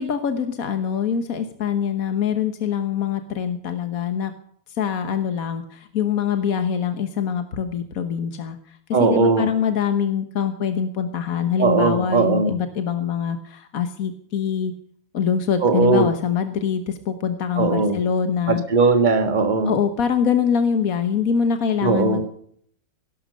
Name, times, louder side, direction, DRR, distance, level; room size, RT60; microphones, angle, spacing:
voice 1, 0.0-4.3 4.7-8.6 8.9-14.7 15.1-18.6 19.6-22.2, left 7 dB, 75° left, 8 dB, 1.7 m, -24 dB
voice 2, 8.9-9.5 11.6-12.5 15.6-16.1 17.6-18.0 18.5-19.7 21.8-22.2, right 4 dB, 35° right, 7 dB, 1.7 m, -18 dB
18.0 x 11.5 x 6.7 m, 0.64 s
omnidirectional pair, 1.5 m